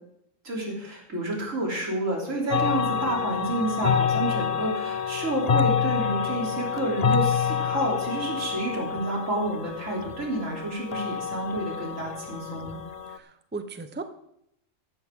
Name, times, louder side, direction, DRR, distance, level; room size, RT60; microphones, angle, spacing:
voice 1, 0.4-12.8, right 1 dB, 90° right, -2 dB, 3.8 m, -29 dB
sound 1, 2.5-13.2, left 7 dB, 45° left, 0.5 m, -27 dB
voice 2, 13.1-14.0, right 3 dB, 10° right, 9 dB, 0.7 m, -36 dB
14.5 x 12.5 x 3.7 m, 0.77 s
omnidirectional pair, 1.3 m